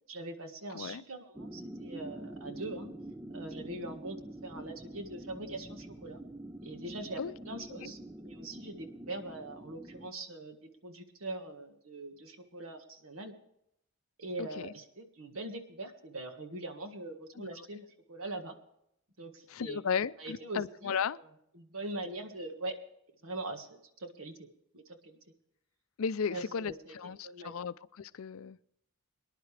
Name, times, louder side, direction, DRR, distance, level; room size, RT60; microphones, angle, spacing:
voice 1, 0.1-2.9 3.3-6.2 6.6-10.6 10.8-13.3 14.2-18.6 19.2-19.8 20.2-21.2 21.5-22.7 23.2-24.5 24.7-25.2 26.3-27.6, right 2 dB, 70° right, 6 dB, 1.7 m, -42 dB
sound 1, 1.4-10.1, right 1 dB, 10° right, 0.4 m, -46 dB
voice 2, 14.4-14.7 17.4-17.5 19.5-21.2 26.0-28.6, left 6 dB, 75° left, 16 dB, 0.4 m, -35 dB
24.0 x 10.5 x 3.3 m, 0.76 s
head